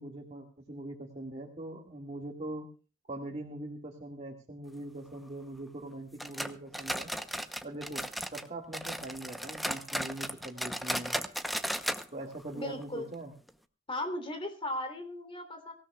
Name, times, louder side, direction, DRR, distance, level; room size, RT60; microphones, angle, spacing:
voice 1, 0.0-2.7 3.1-7.1 7.6-11.2 12.1-13.3, right 1 dB, 35° right, 1 dB, 2.1 m, -42 dB
sound 1, 6.2-8.5 8.7-12.1 12.3-12.4 12.8-12.9 13.5-13.6, equal, ahead, 0.8 m, -35 dB
voice 2, 12.5-13.1 13.9-15.7, left 1 dB, 30° left, 6 dB, 3.4 m, -37 dB
24.5 x 16.0 x 2.4 m, 0.33 s
head